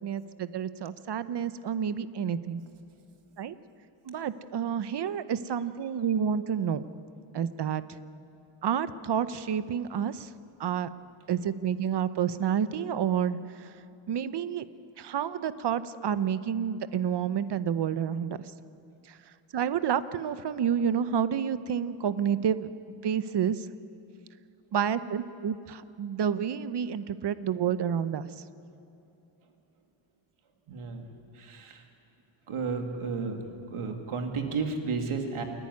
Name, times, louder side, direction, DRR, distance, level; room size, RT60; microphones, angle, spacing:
voice 1, 0.0-2.6 3.4-3.5 4.1-6.8 7.3-7.8 8.6-10.3 10.6-10.9 11.3-13.7 14.1-14.7 15.0-18.4 19.5-22.7 23.0-23.7 24.7-28.3, right 8 dB, 55° right, 13 dB, 0.8 m, -29 dB
voice 2, 30.7-31.1 31.4-31.8 32.5-33.4 33.7-35.4, right 4 dB, 80° right, 3 dB, 2.5 m, -32 dB
28.0 x 11.5 x 9.7 m, 2.7 s
wide cardioid pair, 140°, 50 cm